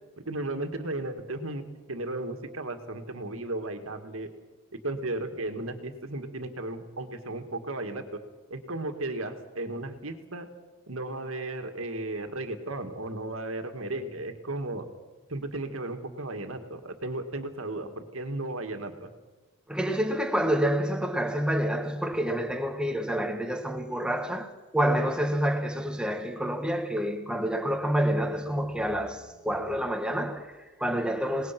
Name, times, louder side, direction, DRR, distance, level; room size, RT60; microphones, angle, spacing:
voice 1, 0.3-1.6 1.9-4.3 4.7-8.2 8.5-10.5 10.9-14.8 15.3-19.1, right 2 dB, 75° right, 2.1 m, -35 dB
voice 2, 19.7-31.5, equal, 5° right, 1.6 m, -28 dB
27.0 x 19.5 x 6.1 m
head